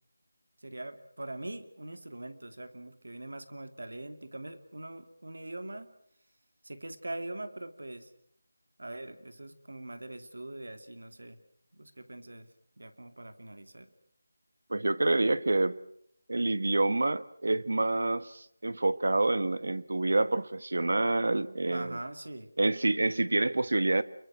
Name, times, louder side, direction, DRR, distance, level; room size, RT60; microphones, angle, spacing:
voice 1, 0.6-5.9 6.6-8.1 8.8-11.4 11.7-12.5 12.8-13.9 21.7-22.5, right 1 dB, 85° right, 9 dB, 2.8 m, -42 dB
voice 2, 14.7-15.8 16.3-22.0 22.6-24.0, right 2 dB, 70° right, 15 dB, 1.4 m, -27 dB
28.5 x 23.0 x 6.5 m, 0.69 s
figure-of-eight pair, 175°, 0 cm